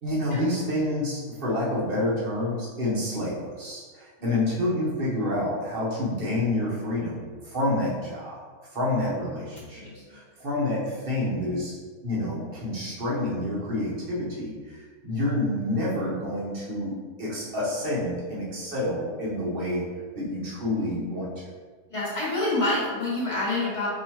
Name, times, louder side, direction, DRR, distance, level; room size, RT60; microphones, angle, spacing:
voice 1, 0.0-8.4 8.7-11.8 12.0-16.9 17.2-19.8 20.1-21.3, left 1 dB, 40° right, -6 dB, 1.0 m, -28 dB
voice 2, 9.8-10.2 21.9-23.9, left 2 dB, 20° left, -8 dB, 1.2 m, -27 dB
4.8 x 2.7 x 2.9 m, 1.5 s
omnidirectional pair, 1.7 m